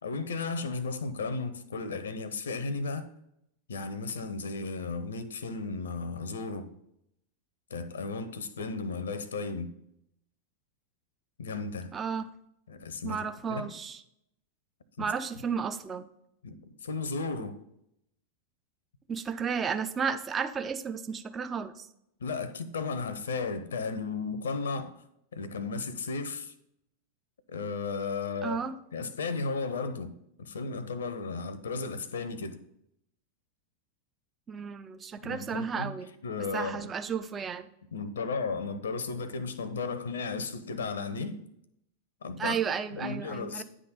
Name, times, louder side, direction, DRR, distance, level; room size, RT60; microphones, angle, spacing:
voice 1, 0.0-3.1 3.7-6.7 7.7-9.7 11.4-11.9 12.7-13.2 13.5-13.7 15.0-15.1 16.4-17.6 22.2-24.9 25.3-26.5 27.5-28.6 28.9-30.1 30.4-32.6 35.2-35.9 36.2-36.9 37.9-41.4 42.2-42.6 42.9-43.6, left 4 dB, 65° left, 0.7 m, -34 dB
voice 2, 11.9-12.3 13.0-14.0 15.0-16.1 19.1-21.9 28.4-28.8 34.5-36.1 36.4-37.7 42.4-43.6, right 6 dB, 20° right, 0.6 m, -33 dB
9.7 x 3.8 x 6.7 m
figure-of-eight pair, 90°, 0 cm